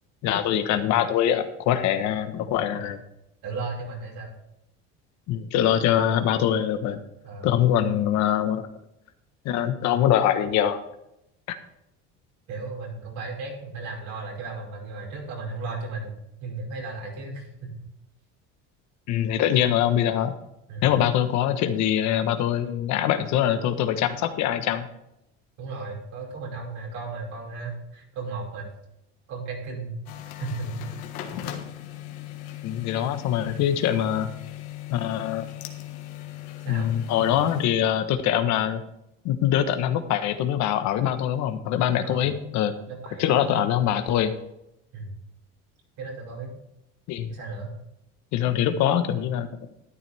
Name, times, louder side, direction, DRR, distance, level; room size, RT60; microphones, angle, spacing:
voice 1, 0.2-3.0 5.3-7.0 7.4-8.6 9.4-10.8 19.1-20.3 20.8-24.9 32.6-34.3 34.9-35.5 36.7-38.8 39.2-42.7 43.2-44.3 47.1-47.3 48.3-49.5, left 10 dB, 60° left, 9 dB, 1.3 m, -23 dB
voice 2, 3.4-4.3 7.2-7.6 12.5-16.1 16.4-17.7 20.7-20.9 25.6-28.7 29.3-30.0 30.4-30.8 31.1-31.3 36.6-37.5 42.0-42.3 42.9-43.6 44.9-45.1 46.0-46.5 47.3-47.7, right 3 dB, 65° right, -1 dB, 5.3 m, -35 dB
sound 1, 30.1-37.7, left 12 dB, 85° left, 1.6 m, -38 dB
12.5 x 10.5 x 3.5 m, 0.82 s
cardioid pair, 120°, 31 cm